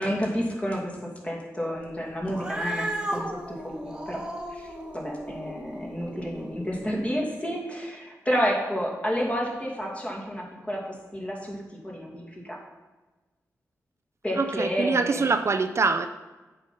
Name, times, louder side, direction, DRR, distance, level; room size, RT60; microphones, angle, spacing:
voice 1, 0.0-4.2 4.5-12.6 14.2-15.3, equal, 20° left, -2 dB, 2.3 m, -30 dB
Cat, 2.2-6.9, right 1 dB, 15° right, 1.3 m, -35 dB
voice 2, 14.4-16.1, right 4 dB, 50° right, 9 dB, 0.4 m, -24 dB
8.2 x 5.7 x 5.3 m, 1.2 s
cardioid pair, 75°, 6 cm